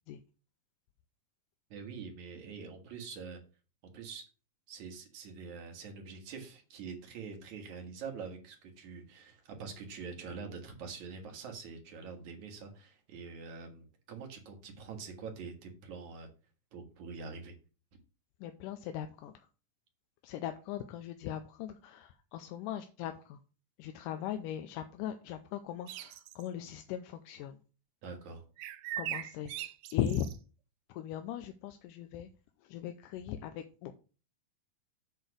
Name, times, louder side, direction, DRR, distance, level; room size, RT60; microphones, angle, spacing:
voice 1, 1.7-3.4 3.9-4.3 4.7-16.3 16.7-17.5 28.0-28.4, right 5 dB, 60° right, 3 dB, 2.8 m, -45 dB
voice 2, 18.4-19.5 20.2-23.4 23.8-27.6 29.0-30.3 30.9-32.3 32.6-33.9, left 10 dB, 80° left, 7 dB, 2.1 m, -39 dB
sound 1, 25.9-26.5 28.6-30.4, right 12 dB, 80° right, 1.8 m, -40 dB
8.1 x 4.4 x 6.3 m, 0.35 s
omnidirectional pair, 3.9 m